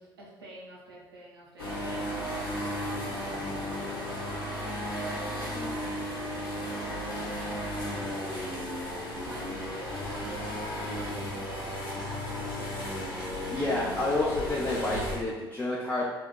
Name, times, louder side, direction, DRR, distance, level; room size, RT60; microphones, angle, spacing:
voice 1, 0.0-11.7, right 1 dB, 85° right, -5 dB, 0.6 m, -48 dB
sound 1, 1.6-15.2, equal, 80° left, 0.6 m, -34 dB
voice 2, 13.5-16.0, left 2 dB, 15° left, -5 dB, 0.4 m, -29 dB
2.7 x 2.1 x 2.3 m, 1.2 s
figure-of-eight pair, 60°, 12 cm